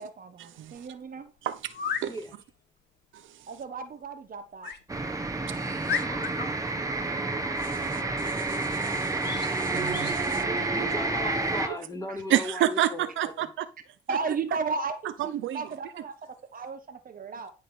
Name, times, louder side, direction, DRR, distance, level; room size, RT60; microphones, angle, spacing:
voice 1, 0.0-1.3 3.5-4.7 14.1-17.5, right 4 dB, 45° right, 1.2 m, -35 dB
voice 2, 0.6-0.9 1.4-2.1 5.9-6.0 7.6-10.4 12.3-13.6 14.1-14.2 15.2-15.7, right 12 dB, 75° right, 0.8 m, -30 dB
sound 1, 0.8-0.9 1.7-2.1 4.6-4.8 5.3-5.4 5.9-6.5 9.2-9.5 9.9-10.2, left 7 dB, 55° left, 1.3 m, -33 dB
sound 2, 4.9-11.7, right 2 dB, 15° right, 1.5 m, -29 dB
voice 3, 6.0-6.6 10.2-13.5, equal, 15° left, 3.9 m, -38 dB
11.0 x 3.8 x 6.3 m
cardioid pair, 90°, 20 cm